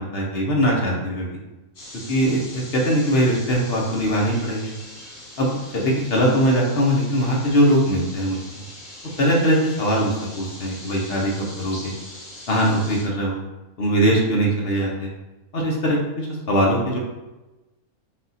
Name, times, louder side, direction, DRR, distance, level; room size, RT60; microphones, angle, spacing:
voice 1, 0.0-1.4 2.1-4.7 5.4-8.6 9.2-11.9 12.5-13.4 13.8-15.1 15.5-17.0, equal, 50° left, -2 dB, 0.9 m, -21 dB
sound 1, 1.8-13.0, left 1 dB, 80° left, 2.1 m, -41 dB
4.1 x 2.4 x 4.0 m, 1.1 s
omnidirectional pair, 1.6 m